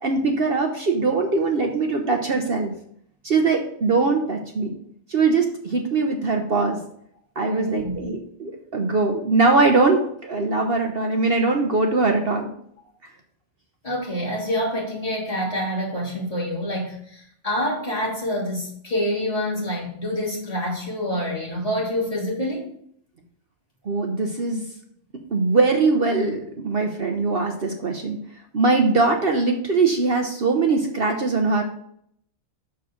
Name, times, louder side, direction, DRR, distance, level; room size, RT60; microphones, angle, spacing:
voice 1, 0.0-2.7 3.2-4.8 5.1-6.8 7.4-12.5 23.8-24.6 25.3-28.2 28.5-31.6, right 3 dB, 50° right, 3 dB, 1.0 m, -21 dB
voice 2, 7.4-8.0 13.8-22.7, equal, 25° left, -6 dB, 2.8 m, -27 dB
6.9 x 6.5 x 3.8 m, 0.66 s
omnidirectional pair, 1.4 m